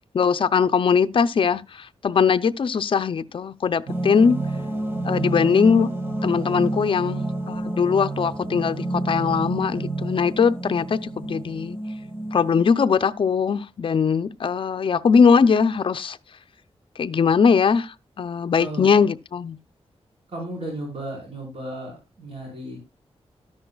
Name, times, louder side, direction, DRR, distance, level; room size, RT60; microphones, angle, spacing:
voice 1, 0.1-4.4 5.0-5.9 6.2-11.8 12.3-16.2 17.0-19.6, left 6 dB, 50° left, 0.6 m, -20 dB
sound 1, 3.9-12.6, right 2 dB, 20° right, 1.8 m, -29 dB
voice 2, 18.6-19.1 20.3-22.8, right 1 dB, 60° right, 4.7 m, -34 dB
12.5 x 10.5 x 2.4 m
wide cardioid pair, 140°, 11 cm